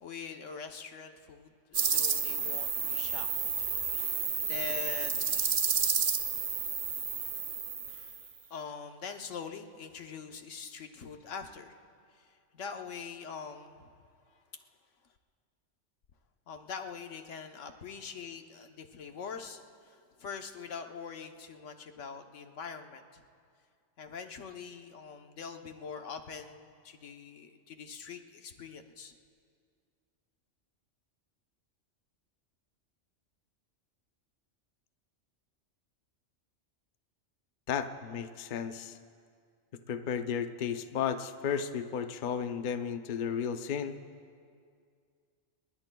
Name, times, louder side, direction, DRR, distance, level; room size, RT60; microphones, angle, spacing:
voice 1, 0.0-3.3 3.6-3.7 4.1-5.3 7.9-11.8 12.2-12.3 12.5-13.9 16.5-23.2 24.0-29.1, left 6 dB, 80° left, 5 dB, 1.3 m, -43 dB
sound 1, 1.7-8.3, right 6 dB, 45° right, 0.5 m, -31 dB
voice 2, 37.7-39.0 39.9-44.0, left 7 dB, 50° left, 8 dB, 0.6 m, -33 dB
27.5 x 21.0 x 2.3 m, 2.2 s
omnidirectional pair, 1.3 m